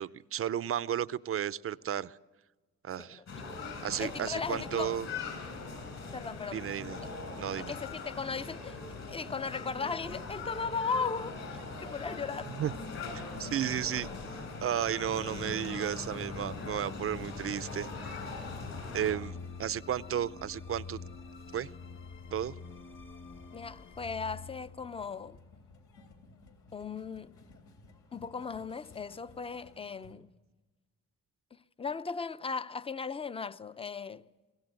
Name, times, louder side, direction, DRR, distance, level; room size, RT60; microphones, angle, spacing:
voice 1, 0.0-2.2 2.8-3.2 3.8-5.1 6.5-7.0 7.4-7.8 12.5-12.7 13.1-17.9 18.9-21.0 21.5-21.7 22.3-22.6, right 10 dB, 50° right, 0.6 m, -33 dB
voice 2, 3.0-3.4 4.0-5.0 6.1-6.6 7.6-8.8 9.1-12.5 23.5-25.4 26.7-27.4 28.1-30.3 31.8-34.3, left 5 dB, 20° left, 0.7 m, -37 dB
sound 1, 3.3-19.1, left 3 dB, 60° left, 6.6 m, -41 dB
sound 2, 11.4-30.2, left 3 dB, 75° left, 3.5 m, -57 dB
sound 3, 11.7-26.1, left 4 dB, 40° left, 1.9 m, -47 dB
22.5 x 17.0 x 8.1 m
cardioid pair, 90°, 30 cm